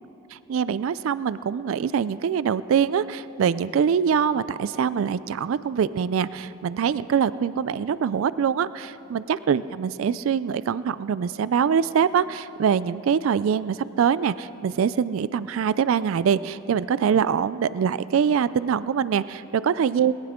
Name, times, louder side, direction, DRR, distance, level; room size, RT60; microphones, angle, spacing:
voice 1, 0.3-20.1, right 7 dB, 75° right, 16 dB, 0.3 m, -24 dB
20.0 x 17.0 x 3.7 m, 2.9 s
head